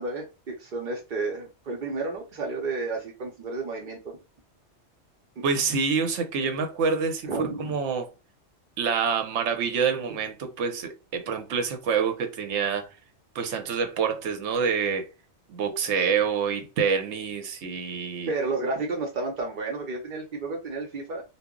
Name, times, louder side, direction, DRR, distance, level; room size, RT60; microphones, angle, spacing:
voice 1, 0.0-4.1 7.2-7.7 10.1-10.2 18.3-21.2, right 3 dB, 55° right, 0.7 m, -31 dB
voice 2, 5.4-8.1 8.8-12.9 13.3-15.1 15.5-18.3, right 6 dB, 75° right, 0.9 m, -27 dB
2.1 x 2.0 x 3.5 m
omnidirectional pair, 1.2 m